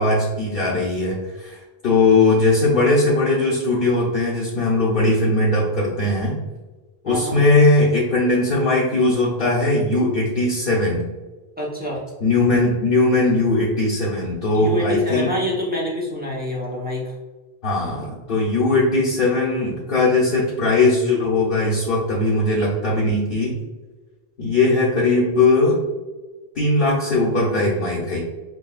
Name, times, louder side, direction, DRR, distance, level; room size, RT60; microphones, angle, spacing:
voice 1, 0.0-6.4 7.0-11.1 12.2-15.3 17.6-23.5 24.4-25.8 26.5-28.2, left 2 dB, 60° left, -7 dB, 1.0 m, -19 dB
voice 2, 7.0-7.4 11.6-12.0 14.5-17.1 17.9-18.0, left 1 dB, 10° right, -3 dB, 0.7 m, -26 dB
6.2 x 2.3 x 2.3 m, 1.2 s
omnidirectional pair, 1.1 m